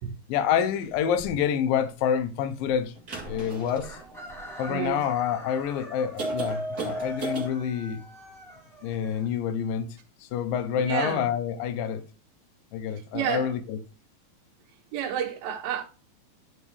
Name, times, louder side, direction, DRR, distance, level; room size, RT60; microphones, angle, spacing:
voice 1, 0.3-2.9 3.2-4.0 4.6-8.0 8.8-9.9 10.2-12.0 12.7-13.8, left 8 dB, 80° left, 2.3 m, -27 dB
sound 1, 1.1-1.3 3.0-4.9 5.5-5.6 6.2-7.5, right 2 dB, 30° right, 1.9 m, -34 dB
Chicken rooster, 3.8-9.7, equal, ahead, 2.3 m, -46 dB
voice 2, 4.7-5.0 10.8-11.2 12.9-13.5 14.9-15.8, right 9 dB, 75° right, 3.0 m, -30 dB
10.0 x 4.8 x 3.2 m
omnidirectional pair, 4.3 m